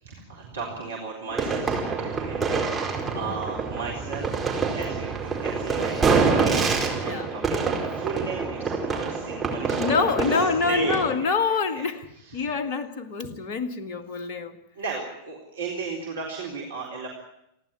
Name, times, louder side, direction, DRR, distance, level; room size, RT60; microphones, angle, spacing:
voice 1, 0.0-10.1 10.7-11.3 11.7-11.8 12.2-12.7 14.8-17.1, right 4 dB, 70° right, 4.0 m, -35 dB
sound 1, 1.3-11.2, right 4 dB, 15° right, 4.6 m, -26 dB
sound 2, 2.1-7.1, right 7 dB, 30° right, 3.3 m, -40 dB
voice 2, 7.0-7.3 9.8-12.0 12.3-14.6, left 5 dB, 45° left, 1.9 m, -26 dB
29.0 x 11.5 x 9.9 m
figure-of-eight pair, 90°, 0 cm